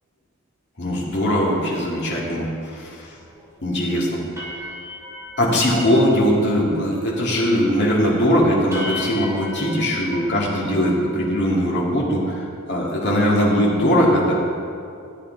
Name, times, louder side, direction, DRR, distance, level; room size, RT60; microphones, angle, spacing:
voice 1, 0.8-3.0 3.6-4.2 5.4-14.4, equal, 50° left, -4 dB, 2.3 m, -20 dB
sound 1, 2.8-2.9 3.3-3.6 3.9-4.0 4.4-6.2 6.5-6.9 7.2-7.6 8.1-8.2 8.7-11.3, left 1 dB, 15° right, 2.4 m, -36 dB
14.0 x 8.4 x 4.0 m, 2.4 s
head